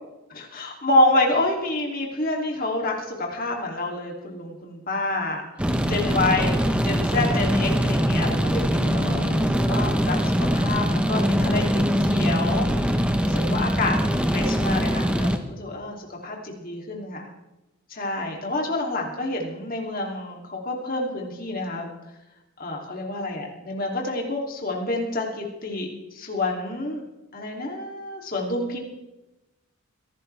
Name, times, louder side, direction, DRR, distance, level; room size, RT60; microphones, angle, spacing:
voice 1, 0.3-6.6 6.8-12.7 13.2-17.3 17.9-21.9 22.6-27.0 27.3-28.8, left 2 dB, 40° left, 0 dB, 2.8 m, -28 dB
sound 1, 5.6-15.4, equal, 5° right, 0.9 m, -22 dB
24.5 x 12.0 x 3.4 m, 1.0 s
head